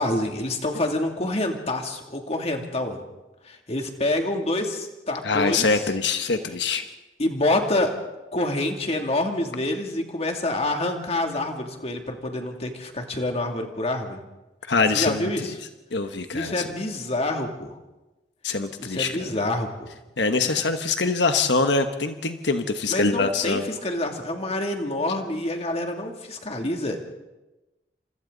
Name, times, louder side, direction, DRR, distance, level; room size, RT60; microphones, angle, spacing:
voice 1, 0.0-3.0 3.4-5.9 7.2-7.9 8.3-14.2 14.9-15.6 16.3-17.8 18.8-19.9 22.8-27.0, left 1 dB, 40° left, 3 dB, 2.7 m, -27 dB
voice 2, 5.2-6.8 14.7-15.3 15.9-16.6 18.4-19.3 20.2-23.7, left 4 dB, 90° left, 7 dB, 1.3 m, -24 dB
30.0 x 27.0 x 4.0 m, 1.1 s
head